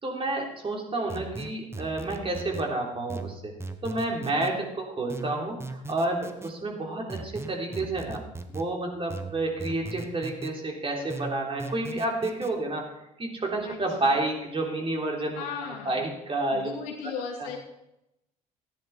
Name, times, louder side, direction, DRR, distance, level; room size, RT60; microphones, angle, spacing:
voice 1, 0.0-3.5 3.8-8.2 8.5-12.9 13.2-15.5 15.9-16.7 17.4-17.5, right 2 dB, 30° right, 0 dB, 3.5 m, -30 dB
sound 1, 1.1-2.7 3.1-4.5 5.1-6.5 7.1-8.7 9.1-10.5 11.1-12.5, right 2 dB, 15° right, 1.2 m, -38 dB
voice 2, 4.3-4.8 7.7-7.9 13.6-14.1 15.3-16.0 16.5-17.6, left 6 dB, 80° left, 0 dB, 2.5 m, -38 dB
14.0 x 10.0 x 4.3 m, 0.85 s
hypercardioid pair, 65°, 18 cm